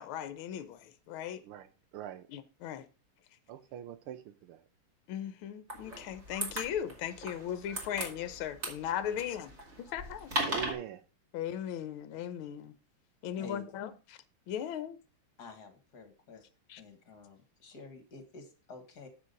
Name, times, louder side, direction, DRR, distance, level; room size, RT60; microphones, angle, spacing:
voice 1, 0.0-1.4 2.3-2.9 5.1-9.5 9.8-10.3 11.3-12.7 13.2-14.2 14.5-15.0 16.7-16.8, left 10 dB, 75° left, 1.6 m, -38 dB
voice 2, 1.9-2.3 3.5-4.6 10.4-11.0, right 11 dB, 80° right, 1.8 m, -42 dB
sound 1, 5.7-10.7, equal, 30° right, 2.6 m, -38 dB
voice 3, 15.4-16.5 16.8-19.1, left 4 dB, 50° left, 2.1 m, -49 dB
8.2 x 6.1 x 5.3 m
omnidirectional pair, 2.4 m